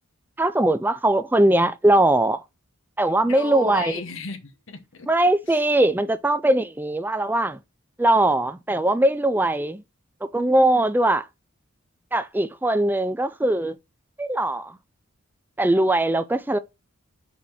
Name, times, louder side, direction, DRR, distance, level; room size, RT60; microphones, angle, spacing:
voice 1, 0.4-2.4 3.0-4.0 5.1-7.6 8.0-9.8 10.3-11.3 12.1-13.8 14.2-14.8 15.6-16.6, right 1 dB, 10° right, 0.4 m, -20 dB
voice 2, 3.2-5.1 5.5-5.6, left 3 dB, 70° left, 1.0 m, -33 dB
4.9 x 4.1 x 5.6 m
head